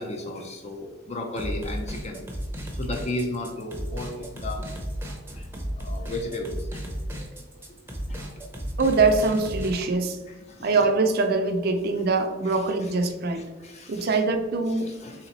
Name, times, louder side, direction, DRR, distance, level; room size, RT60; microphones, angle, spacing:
voice 1, 0.0-2.2 2.8-4.7 5.4-5.5 5.8-6.8 7.2-7.4 8.1-8.2 10.5-10.7 12.5-12.6 13.6-14.1 14.8-15.3, left 1 dB, 35° left, 2 dB, 0.5 m, -34 dB
sound 1, 1.4-9.7, equal, 10° right, 0.6 m, -34 dB
voice 2, 8.8-10.2 10.6-13.5 13.9-14.9, right 3 dB, 55° right, 6 dB, 0.4 m, -23 dB
3.3 x 2.9 x 4.0 m, 1.2 s
head